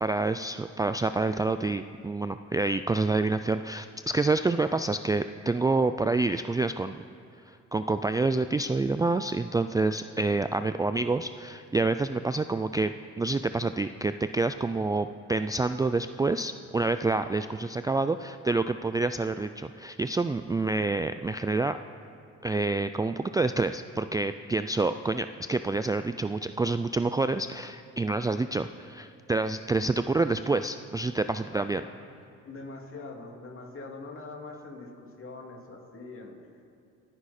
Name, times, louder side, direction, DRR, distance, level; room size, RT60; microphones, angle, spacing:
voice 1, 0.0-7.0 7.5-21.8 22.4-31.8, right 3 dB, 15° right, 10 dB, 0.3 m, -28 dB
voice 2, 31.5-32.0 32.4-36.4, left 3 dB, 45° left, 1 dB, 2.7 m, -43 dB
27.0 x 9.8 x 4.3 m, 2.5 s
cardioid pair, 90°, 30 cm